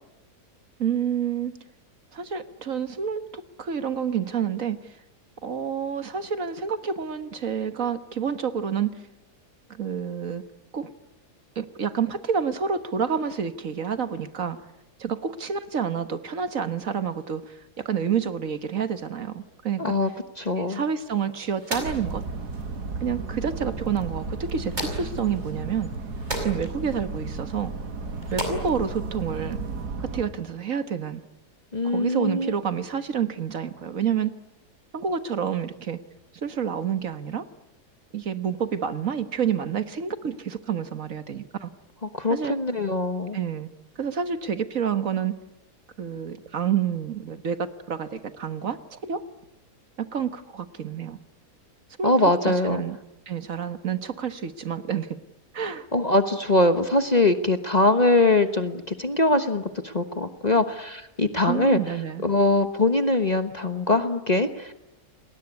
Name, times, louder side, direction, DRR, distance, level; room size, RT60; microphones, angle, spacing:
voice 1, 0.8-1.5 2.1-4.8 5.4-9.0 9.7-10.4 10.7-10.9 11.6-14.6 15.0-19.9 20.6-22.2 23.0-25.9 26.4-27.7 28.3-29.6 30.0-31.2 31.8-34.3 34.9-36.0 36.4-37.5 38.1-41.7 42.3-42.6 43.3-43.7 44.0-45.3 46.0-49.2 50.0-51.2 52.0-52.1 52.4-53.0 53.3-55.2 55.5-55.9 61.5-62.2, right 7 dB, 55° right, 11 dB, 1.7 m, -28 dB
voice 2, 19.8-20.1 20.4-20.8 31.7-32.5 42.1-43.4 52.0-52.8 55.9-61.8 62.2-64.7, left 2 dB, 30° left, 9 dB, 1.2 m, -22 dB
sound 1, 20.9-29.9, right 1 dB, 25° right, 5.3 m, -38 dB
sound 2, 21.8-30.2, right 3 dB, 75° right, 2.5 m, -34 dB
29.0 x 20.0 x 9.7 m, 0.91 s
omnidirectional pair, 1.7 m